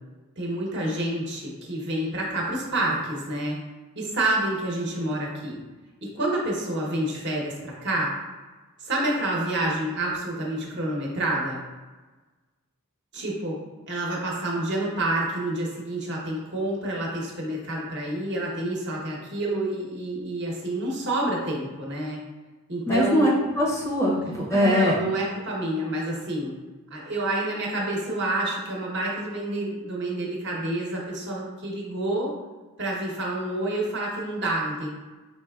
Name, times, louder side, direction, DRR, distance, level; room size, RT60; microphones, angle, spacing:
voice 1, 0.4-3.6 3.9-5.6 6.0-8.1 8.8-11.6 13.1-13.6 13.9-22.2 22.7-23.3 24.5-26.5 26.9-32.3 32.8-34.9, right 1 dB, 50° right, -3 dB, 0.9 m, -28 dB
voice 2, 22.9-25.0, equal, 15° left, -4 dB, 0.6 m, -22 dB
4.5 x 3.3 x 2.3 m, 1.3 s
head